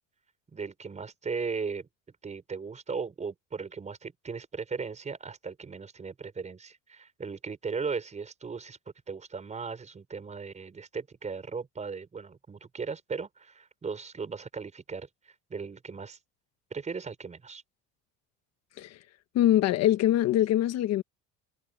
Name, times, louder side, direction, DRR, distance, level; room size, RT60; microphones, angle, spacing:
voice 1, 0.5-1.9 2.2-8.8 9.1-16.2 16.7-17.6, right 5 dB, 25° right, 5.6 m, -37 dB
voice 2, 19.3-21.0, left 12 dB, 55° left, 1.4 m, -23 dB
cardioid pair, 130°, 30 cm